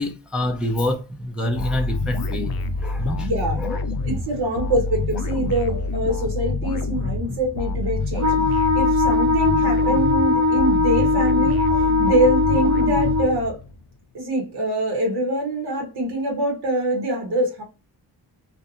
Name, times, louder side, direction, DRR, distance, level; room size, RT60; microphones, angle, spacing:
voice 1, 0.0-2.5 2.8-3.3 3.6-3.8, left 1 dB, ahead, 0.4 m, -26 dB
sound 1, 1.6-13.8, left 3 dB, 65° left, 0.5 m, -27 dB
voice 2, 3.2-3.6 4.1-8.3 8.7-13.6 14.1-17.6, right 1 dB, 80° right, 1.1 m, -24 dB
Wind instrument woodwind instrument, 8.2-13.4, left 3 dB, 45° right, 0.6 m, -20 dB
2.6 x 2.2 x 2.5 m
cardioid pair, 95°, 40 cm